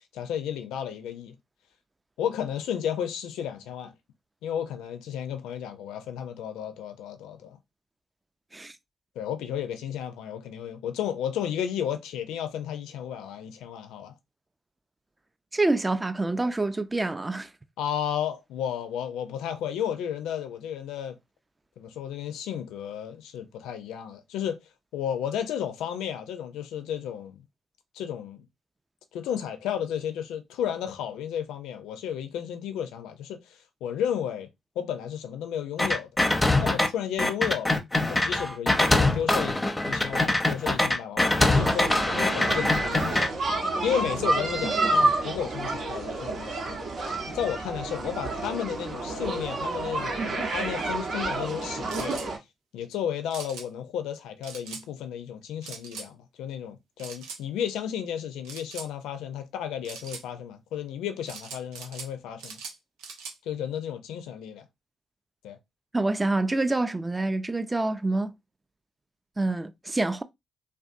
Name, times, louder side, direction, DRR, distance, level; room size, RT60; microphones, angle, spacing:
voice 1, 0.1-1.3 2.2-3.9 4.4-7.6 9.2-14.1 17.8-21.2 21.8-24.6 24.9-27.4 27.9-28.4 29.1-34.5 34.8-36.1 36.6-37.8 38.1-43.1 43.8-46.8 47.3-52.2 52.7-62.6 63.5-64.7 65.4-65.6, left 9 dB, 80° left, 0.4 m, -33 dB
voice 2, 15.5-17.5 65.9-68.3 69.4-70.2, right 2 dB, 25° right, 0.4 m, -26 dB
sound 1, 35.8-36.9 37.2-43.3, left 2 dB, 20° left, 0.6 m, -23 dB
sound 2, 41.4-52.4, right 2 dB, 65° right, 0.9 m, -29 dB
sound 3, 51.9-52.3 53.3-53.7 54.4-54.8 55.6-56.1 57.0-57.4 58.4-58.9 59.8-60.2 61.3-62.1 62.4-63.4, right 5 dB, 85° right, 0.4 m, -41 dB
2.5 x 2.2 x 2.4 m
hypercardioid pair, 45°, 0 cm